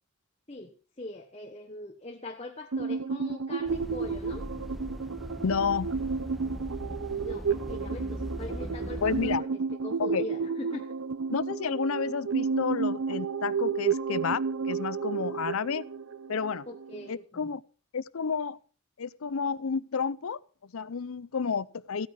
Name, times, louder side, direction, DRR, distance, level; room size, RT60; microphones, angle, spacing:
voice 1, 0.5-4.4 7.2-9.5 9.8-10.9 15.1-15.5 16.7-17.6, left 2 dB, 30° left, 1.2 m, -42 dB
sound 1, 2.7-17.1, right 5 dB, 80° right, 0.9 m, -32 dB
sound 2, 3.7-9.4, equal, ahead, 0.7 m, -39 dB
voice 2, 5.4-6.0 9.0-9.4 10.0-10.2 11.3-15.9 16.3-16.7 17.1-17.6 17.9-18.6 19.0-22.1, left 5 dB, 80° left, 0.6 m, -31 dB
15.5 x 9.6 x 5.7 m
head